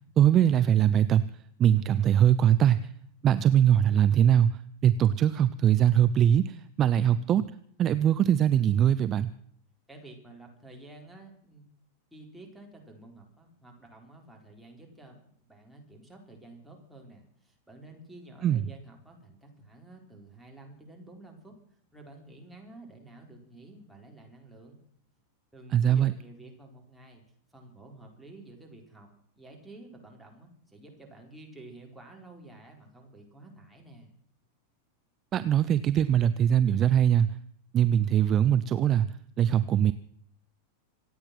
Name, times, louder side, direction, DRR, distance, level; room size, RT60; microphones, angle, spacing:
voice 1, 0.2-1.3 1.6-2.9 3.2-7.5 7.8-9.3 18.4-18.6 25.7-26.1 35.3-37.3 37.7-39.9, right 10 dB, 30° right, 13 dB, 0.6 m, -22 dB
voice 2, 9.9-11.7 12.1-21.6 21.9-24.8 25.5-27.2 27.5-29.1 29.4-34.1, right 2 dB, ahead, -1 dB, 4.6 m, -50 dB
26.0 x 8.9 x 6.1 m, 0.64 s
figure-of-eight pair, 90°, 0 cm